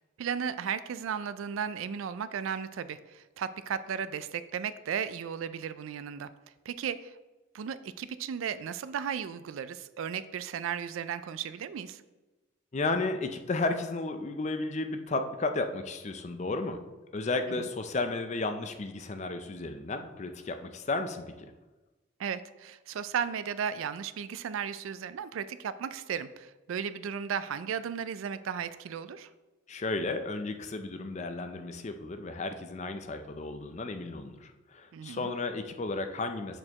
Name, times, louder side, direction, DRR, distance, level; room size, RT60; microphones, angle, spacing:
voice 1, 0.2-6.3 6.7-7.1 7.5-12.0 17.6-17.7 22.2-29.3 34.9-35.3, right 7 dB, 80° right, 14 dB, 0.3 m, -35 dB
voice 2, 12.7-16.8 17.1-21.5 29.7-36.6, left 3 dB, 35° left, 7 dB, 0.5 m, -33 dB
6.5 x 6.4 x 2.9 m, 1.1 s
head